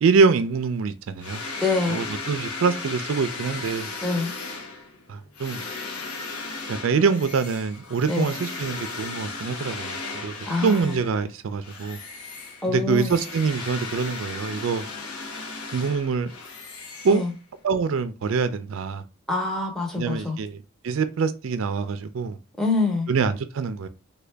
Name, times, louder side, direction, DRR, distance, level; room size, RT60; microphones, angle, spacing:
voice 1, 0.0-1.4 1.9-3.9 5.1-5.7 6.7-12.0 12.7-14.8 15.7-16.3 17.0-17.2 17.6-19.0 19.9-22.4 23.1-23.9, right 5 dB, 60° right, 0.4 m, -25 dB
sound 1, 1.2-11.3 11.6-17.6, left 3 dB, 85° left, 0.8 m, -36 dB
voice 2, 1.6-2.0 4.0-4.3 8.1-8.3 10.5-10.9 12.6-13.1 17.1-17.3 19.3-20.4 22.6-23.1, left 3 dB, ahead, 0.8 m, -25 dB
3.6 x 2.2 x 3.3 m
head